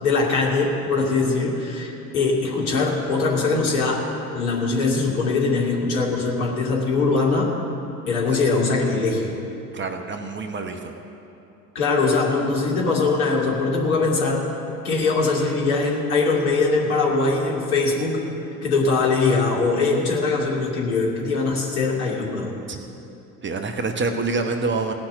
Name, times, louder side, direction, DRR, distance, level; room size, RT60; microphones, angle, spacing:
voice 1, 0.0-4.0 4.3-7.5 8.1-9.3 11.7-14.5 14.8-18.2 18.6-22.5, left 3 dB, 65° left, -3 dB, 2.6 m, -22 dB
voice 2, 9.7-10.9 22.7-22.8 23.4-24.9, right 3 dB, 25° right, 5 dB, 1.0 m, -26 dB
17.5 x 5.9 x 8.8 m, 2.8 s
figure-of-eight pair, 65°, 47 cm